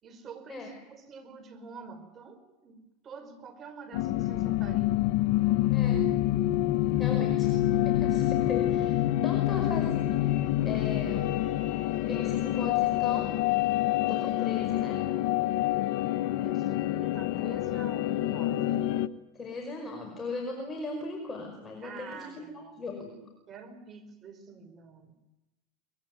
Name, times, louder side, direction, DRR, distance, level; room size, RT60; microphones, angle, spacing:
voice 1, 0.0-2.8 3.0-5.0 16.3-18.7 21.8-23.0 23.5-25.1, right 5 dB, 35° right, 10 dB, 5.2 m, -47 dB
sound 1, 3.9-19.1, left 14 dB, 65° left, 1.1 m, -27 dB
voice 2, 5.7-6.1 7.0-11.3 12.1-13.4 14.1-15.0 19.3-23.3, left 3 dB, 20° left, 3 dB, 5.3 m, -38 dB
23.5 x 22.0 x 9.7 m, 1.0 s
supercardioid pair, 115°, 0 cm